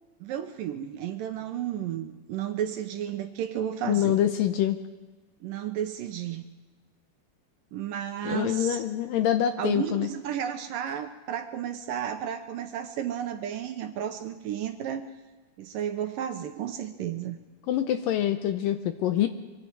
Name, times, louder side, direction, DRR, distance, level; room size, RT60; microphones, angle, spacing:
voice 1, 0.2-4.2 5.4-6.4 7.7-8.8 9.6-15.1 15.6-17.4, right 10 dB, 75° right, 7 dB, 2.2 m, -33 dB
voice 2, 3.9-4.8 8.3-10.1 17.7-19.3, left 11 dB, 75° left, 9 dB, 2.1 m, -25 dB
24.5 x 24.0 x 4.7 m, 1.2 s
omnidirectional pair, 4.6 m